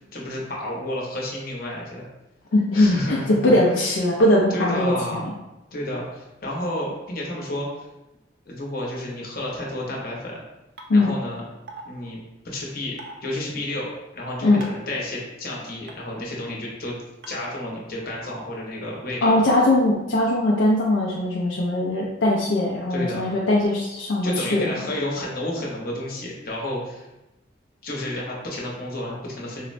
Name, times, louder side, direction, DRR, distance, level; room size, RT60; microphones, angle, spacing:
voice 1, 0.1-2.0 2.7-3.5 4.5-5.2 5.7-7.9 8.5-10.4 10.9-11.4 11.8-12.2 12.4-16.9 17.3-19.4 22.9-23.3 24.2-27.1 27.8-29.6, left 1 dB, 50° left, -3 dB, 0.8 m, -31 dB
voice 2, 2.5-5.3 10.9-11.1 14.4-14.6 19.2-24.7, left 1 dB, 75° left, -3 dB, 0.4 m, -20 dB
sound 1, 10.8-10.9 11.7-11.8 13.0-13.1 14.6-14.9 15.9-16.0 17.2-17.3, right 3 dB, 60° right, 0.5 m, -38 dB
3.9 x 2.1 x 2.5 m, 0.95 s
head